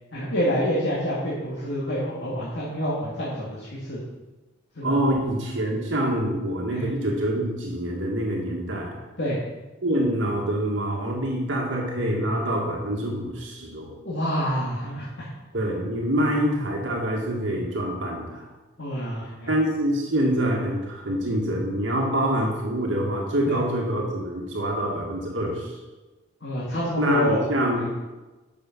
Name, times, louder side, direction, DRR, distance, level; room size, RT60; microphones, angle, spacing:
voice 1, 0.1-4.0 4.8-5.0 6.7-6.8 9.2-9.4 14.0-15.1 18.8-19.5 23.5-23.6 26.4-27.4 27.8-27.9, equal, 65° left, -7 dB, 2.3 m, -27 dB
voice 2, 4.8-8.9 9.8-13.9 15.5-18.5 19.5-25.8 27.0-27.9, right 1 dB, 75° right, -1 dB, 1.9 m, -25 dB
10.0 x 6.7 x 6.0 m, 1.2 s
head